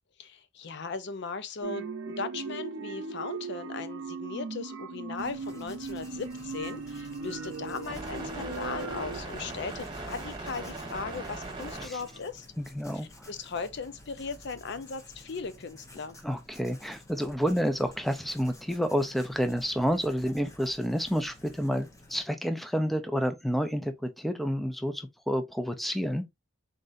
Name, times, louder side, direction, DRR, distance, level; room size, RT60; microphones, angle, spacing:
voice 1, 0.2-12.5 13.3-16.2, left 4 dB, 60° left, 0.5 m, -38 dB
sound 1, 1.6-9.2, right 4 dB, 80° right, 0.6 m, -38 dB
Writing, 5.2-22.2, left 1 dB, 15° left, 0.9 m, -52 dB
sound 2, 6.0-12.2, right 2 dB, 25° right, 1.2 m, -41 dB
voice 2, 12.6-13.3 16.2-26.2, equal, ahead, 0.4 m, -29 dB
3.9 x 3.7 x 2.5 m
head